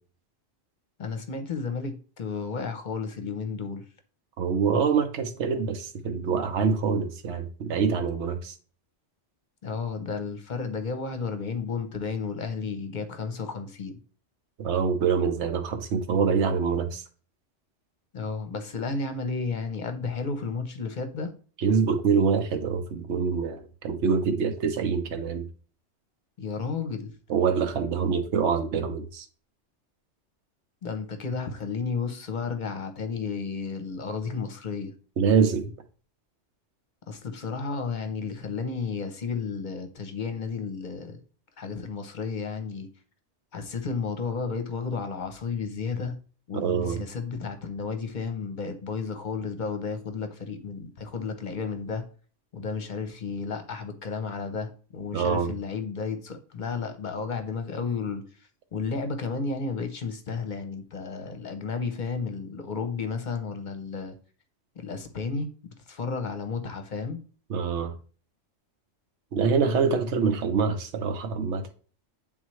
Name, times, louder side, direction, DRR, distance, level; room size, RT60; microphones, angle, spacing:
voice 1, 1.0-3.9 9.6-14.0 18.1-21.3 26.4-27.1 30.8-34.9 37.1-41.2 41.6-42.9 43.5-46.2 46.5-52.0 52.5-58.2 58.7-64.1 64.8-67.2, left 4 dB, 45° left, 0.9 m, -32 dB
voice 2, 4.4-8.5 14.6-17.0 21.6-25.4 27.3-29.3 35.2-35.6 46.5-47.0 55.1-55.5 67.5-67.9 69.3-71.6, right 6 dB, 70° right, 1.1 m, -25 dB
8.9 x 3.7 x 3.1 m
omnidirectional pair, 1.2 m